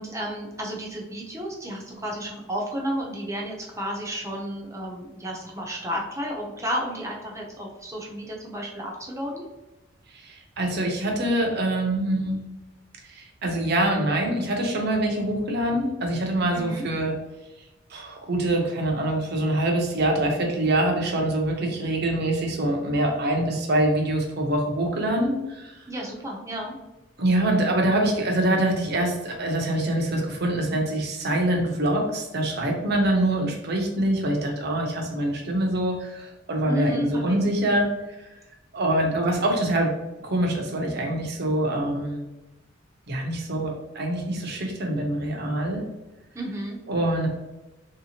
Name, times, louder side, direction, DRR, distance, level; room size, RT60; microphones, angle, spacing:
voice 1, 0.0-9.5 16.5-16.9 25.9-26.8 36.7-37.5 46.3-46.8, equal, 15° right, -2 dB, 0.6 m, -32 dB
voice 2, 10.1-12.4 13.0-17.1 17.9-25.8 27.2-38.3 38.7-39.9 40.2-42.3 43.1-45.8 46.9-47.3, right 1 dB, 55° right, 1 dB, 0.7 m, -25 dB
3.2 x 2.8 x 2.8 m, 1.0 s
head